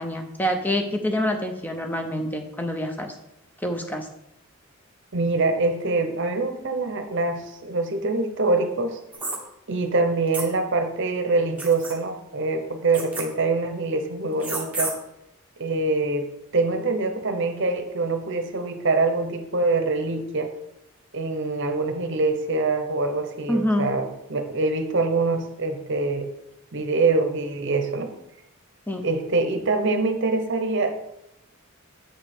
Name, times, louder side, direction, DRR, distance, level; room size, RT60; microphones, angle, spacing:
voice 1, 0.0-3.1 3.6-4.1 23.5-23.9 28.9-29.1, equal, 10° left, 4 dB, 0.6 m, -26 dB
voice 2, 5.1-9.0 9.7-14.9 15.6-20.5 21.1-26.3 26.7-28.1 29.0-31.1, right 3 dB, 55° right, 7 dB, 0.8 m, -24 dB
sound 1, 9.1-9.4 10.3-10.5 11.6-11.9 12.9-13.2 14.4-14.9, right 3 dB, 5° right, 1.0 m, -30 dB
7.7 x 5.0 x 4.3 m, 0.83 s
head